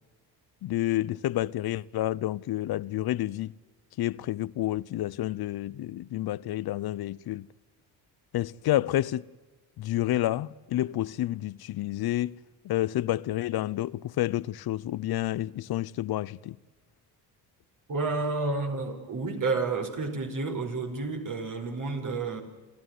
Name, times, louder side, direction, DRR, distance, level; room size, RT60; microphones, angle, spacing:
voice 1, 0.6-3.5 4.0-7.5 8.3-9.2 9.8-12.3 12.6-16.6, left 14 dB, 65° left, 0.8 m, -29 dB
voice 2, 17.9-22.4, right 3 dB, 50° right, 5.2 m, -30 dB
29.0 x 14.0 x 9.4 m
cardioid pair, 85°, 41 cm